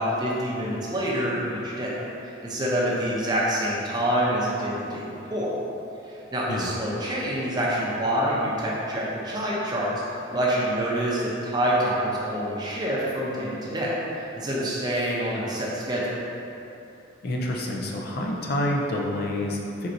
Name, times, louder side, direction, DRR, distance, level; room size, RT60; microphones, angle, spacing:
voice 1, 0.0-2.0 2.4-5.5 6.1-9.9 10.3-16.1, equal, 20° right, -6 dB, 0.6 m, -26 dB
voice 2, 17.2-19.9, left 1 dB, 50° left, -1 dB, 0.4 m, -28 dB
4.4 x 3.8 x 2.6 m, 2.9 s
head